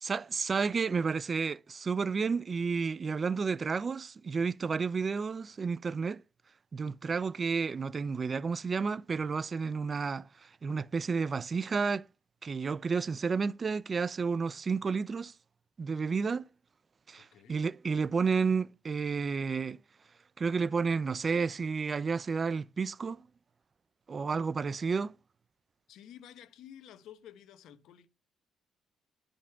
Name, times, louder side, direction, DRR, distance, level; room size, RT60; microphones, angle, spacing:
voice 1, 0.0-6.2 6.7-10.3 10.6-12.1 12.4-15.3 15.8-16.4 17.1-19.8 20.4-23.2 24.1-25.1, right 5 dB, 40° right, 0.4 m, -31 dB
voice 2, 17.2-17.6 25.9-28.1, left 10 dB, 85° left, 1.1 m, -52 dB
11.0 x 5.2 x 3.5 m
cardioid pair, 90°, 0 cm